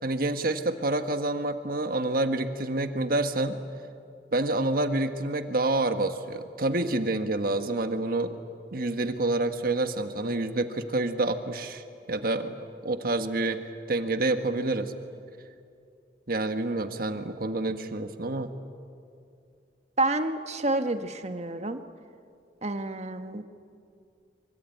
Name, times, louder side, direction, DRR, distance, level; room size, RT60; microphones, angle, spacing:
voice 1, 0.0-3.6 4.3-8.3 8.7-12.6 12.8-13.6 13.9-14.9 16.3-18.5, right 2 dB, 55° right, 8 dB, 1.5 m, -28 dB
voice 2, 20.0-21.8 22.6-23.4, right 2 dB, 40° right, 8 dB, 1.4 m, -29 dB
25.0 x 24.5 x 9.3 m, 2.4 s
head